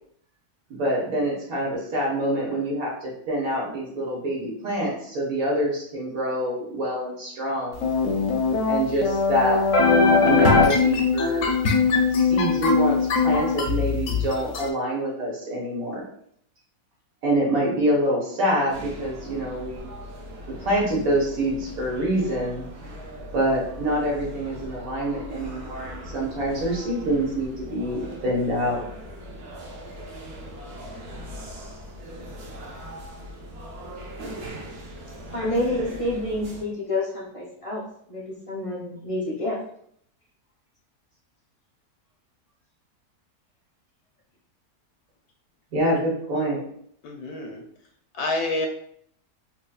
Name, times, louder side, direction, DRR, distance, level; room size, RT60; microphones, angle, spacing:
voice 1, 0.7-7.9 8.7-9.6 10.2-11.5 12.1-16.0 17.2-19.8 20.5-22.6 23.3-28.8 45.7-46.6, right 1 dB, 65° right, -3 dB, 1.7 m, -26 dB
sound 1, 7.8-14.6, left 4 dB, 65° left, 0.9 m, -21 dB
sound 2, 18.7-36.6, equal, 90° right, 1.4 m, -40 dB
voice 2, 35.3-37.8 38.1-39.6, left 1 dB, 35° left, -4 dB, 0.6 m, -28 dB
voice 3, 47.0-47.6 48.1-48.7, left 2 dB, 85° left, 2 dB, 1.2 m, -28 dB
4.3 x 2.9 x 2.3 m, 0.66 s
omnidirectional pair, 1.6 m